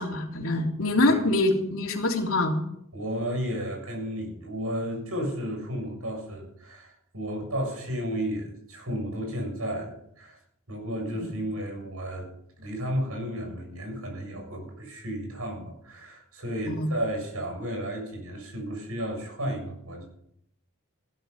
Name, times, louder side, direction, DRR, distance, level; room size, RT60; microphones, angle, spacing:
voice 1, 0.0-2.5 16.6-16.9, left 2 dB, 70° left, 1 dB, 3.4 m, -25 dB
voice 2, 2.9-10.4 10.7-12.3 12.6-20.1, equal, 90° right, 1 dB, 7.5 m, -33 dB
16.0 x 12.5 x 5.5 m, 0.73 s
head